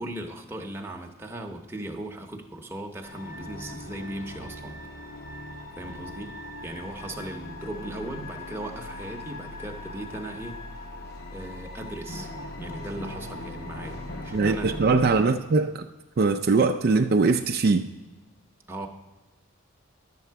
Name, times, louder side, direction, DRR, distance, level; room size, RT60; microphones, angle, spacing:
voice 1, 0.0-4.8 5.8-10.6 11.3-12.3 12.6-14.8 18.7-18.9, right 1 dB, 10° right, 2 dB, 0.8 m, -38 dB
sound 1, 3.0-15.2, left 1 dB, 45° left, 0.9 m, -39 dB
voice 2, 14.3-15.9 16.2-17.9, right 4 dB, 45° right, 6 dB, 0.3 m, -22 dB
11.0 x 7.6 x 4.6 m, 1.2 s
head